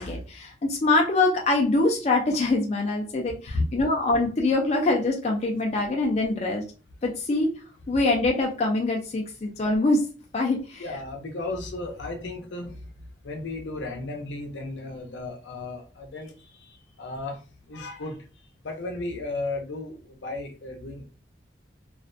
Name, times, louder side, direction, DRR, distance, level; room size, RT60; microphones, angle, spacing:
voice 1, 0.0-6.6 7.0-7.5 7.9-10.0 10.3-10.8, left 2 dB, 35° left, 1 dB, 0.3 m, -24 dB
voice 2, 10.8-12.8 13.2-17.4 17.7-18.2 18.6-21.0, left 2 dB, 75° left, 3 dB, 0.6 m, -34 dB
2.4 x 2.1 x 2.5 m, 0.36 s
head